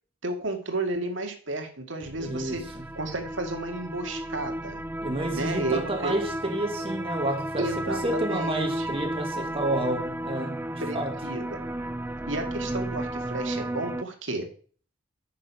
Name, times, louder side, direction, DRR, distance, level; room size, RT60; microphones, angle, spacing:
voice 1, 0.2-2.6 3.0-4.8 5.3-6.1 7.6-9.0 10.8-11.6 12.3-14.5, right 2 dB, 75° right, 2.0 m, -32 dB
sound 1, 2.0-14.0, right 1 dB, 10° right, 0.4 m, -33 dB
voice 2, 2.2-2.8 5.0-11.2, right 1 dB, 30° right, 1.8 m, -30 dB
9.4 x 6.3 x 5.7 m
head